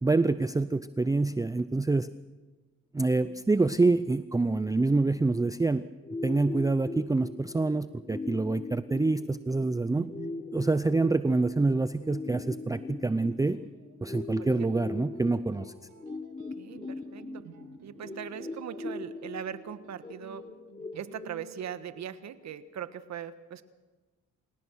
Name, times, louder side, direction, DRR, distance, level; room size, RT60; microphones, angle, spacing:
voice 1, 0.0-2.1 2.9-5.8 6.2-10.1 10.5-13.6 14.0-15.7, right 3 dB, 10° right, 13 dB, 0.6 m, -26 dB
sound 1, 6.0-22.0, left 3 dB, 20° left, 1.3 m, -41 dB
sound 2, 9.8-21.5, right 8 dB, 80° right, 1.8 m, -52 dB
voice 2, 14.4-14.9 16.6-17.4 17.8-20.4 20.9-23.6, right 9 dB, 65° right, 12 dB, 1.5 m, -40 dB
28.0 x 16.5 x 6.4 m, 1.3 s
cardioid pair, 90°, 30 cm